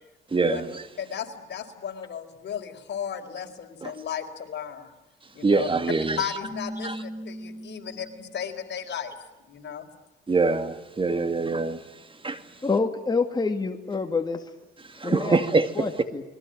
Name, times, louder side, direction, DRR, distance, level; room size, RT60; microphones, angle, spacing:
voice 1, 0.3-0.8 3.8-3.9 5.4-6.2 6.8-7.0 10.3-11.8 12.2-12.4 14.9-15.7, right 3 dB, 25° right, 10 dB, 2.1 m, -24 dB
voice 2, 1.0-4.9 5.3-5.7 6.2-9.1 9.5-9.9 12.4-12.7, left 8 dB, 60° left, 5 dB, 4.5 m, -35 dB
Keyboard (musical), 6.4-8.4, equal, 40° left, 4.9 m, -38 dB
voice 3, 12.6-14.5 15.0-16.2, left 4 dB, 20° left, 5 dB, 2.4 m, -27 dB
28.5 x 22.0 x 8.9 m, 1.0 s
cardioid pair, 90°, 20 cm